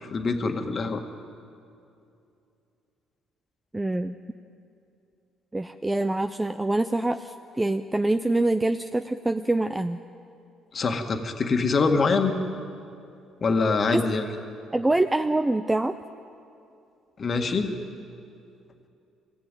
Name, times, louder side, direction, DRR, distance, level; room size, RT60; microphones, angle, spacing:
voice 1, 0.1-1.0 10.7-12.4 13.4-14.3 17.2-17.7, left 4 dB, 35° left, 5 dB, 1.8 m, -24 dB
voice 2, 3.7-4.2 5.5-10.0 13.9-14.0 14.7-15.9, right 2 dB, 10° right, 8 dB, 0.5 m, -25 dB
24.5 x 18.0 x 9.1 m, 2.6 s
cardioid pair, 145°, 0 cm